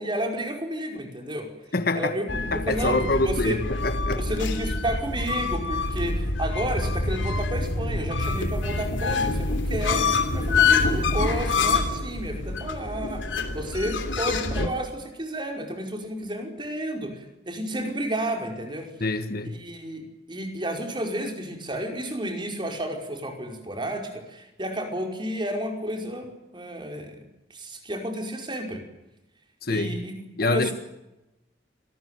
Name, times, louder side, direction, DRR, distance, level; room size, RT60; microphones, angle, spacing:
voice 1, 0.0-1.5 2.0-3.6 4.2-18.9 19.4-20.0 20.3-27.2 27.5-28.8 29.7-30.2 30.4-30.7, right 1 dB, 25° right, 5.2 m, -31 dB
voice 2, 1.7-2.1 2.5-4.4 19.0-19.6 29.6-30.0 30.4-30.7, left 2 dB, 55° left, 1.5 m, -26 dB
sound 1, 2.3-14.7, left 3 dB, 85° left, 3.2 m, -26 dB
27.0 x 20.0 x 9.2 m
head